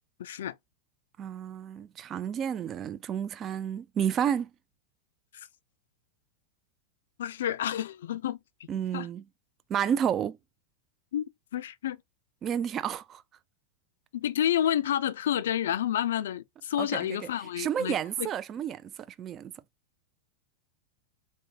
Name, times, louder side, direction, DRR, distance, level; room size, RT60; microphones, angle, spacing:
voice 1, 0.2-0.6 5.3-5.5 7.2-8.7 8.9-9.1 11.1-11.2 11.5-12.0 14.1-18.3, left 10 dB, 80° left, 0.3 m, -30 dB
voice 2, 1.2-4.5 8.7-9.2 9.7-10.4 12.4-13.2 16.8-17.2 17.6-18.9 19.2-19.5, right 9 dB, 30° right, 0.3 m, -31 dB
3.2 x 2.1 x 2.7 m
hypercardioid pair, 120°, 0 cm